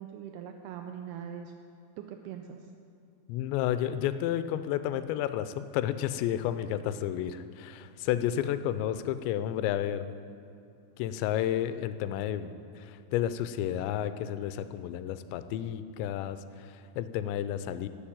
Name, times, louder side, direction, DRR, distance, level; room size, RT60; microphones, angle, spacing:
voice 1, 0.0-1.5 2.0-2.7, right 8 dB, 85° right, 5 dB, 2.3 m, -41 dB
voice 2, 3.3-10.1 11.0-17.9, left 11 dB, 85° left, 12 dB, 2.8 m, -31 dB
11.5 x 7.4 x 8.8 m, 2.6 s
omnidirectional pair, 5.1 m